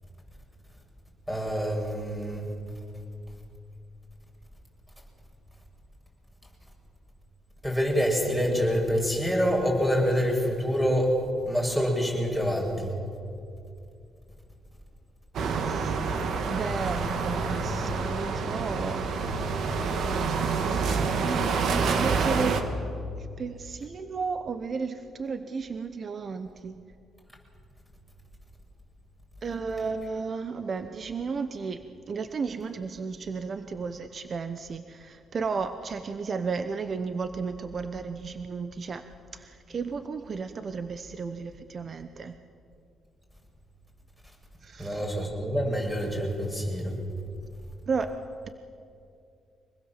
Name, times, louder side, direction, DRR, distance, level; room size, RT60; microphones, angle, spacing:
voice 1, 1.3-2.5 7.6-12.9 44.8-47.0, equal, 5° right, 0 dB, 7.2 m, -26 dB
sound 1, 15.3-22.6, right 4 dB, 70° right, 2.1 m, -27 dB
voice 2, 15.6-16.0 16.5-19.1 21.2-22.7 23.2-26.8 29.4-39.0 39.3-42.3 44.6-45.0 47.9-48.1, right 5 dB, 45° right, 9 dB, 1.0 m, -33 dB
25.5 x 20.0 x 7.5 m, 2.5 s
cardioid pair, 90°, 0 cm